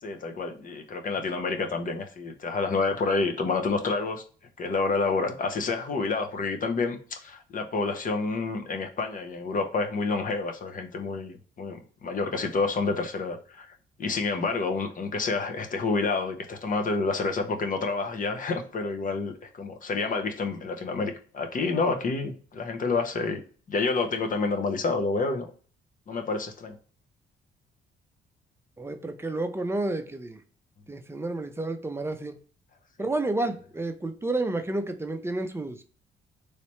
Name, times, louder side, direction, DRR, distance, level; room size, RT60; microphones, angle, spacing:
voice 1, 0.0-4.2 4.6-23.4 23.7-25.5 26.1-26.8, left 3 dB, 45° left, 5 dB, 0.7 m, -29 dB
voice 2, 28.8-30.4 30.9-32.4 33.0-35.8, right 2 dB, 10° right, 6 dB, 0.5 m, -30 dB
3.2 x 3.0 x 2.9 m, 0.41 s
cardioid pair, 90°, 20 cm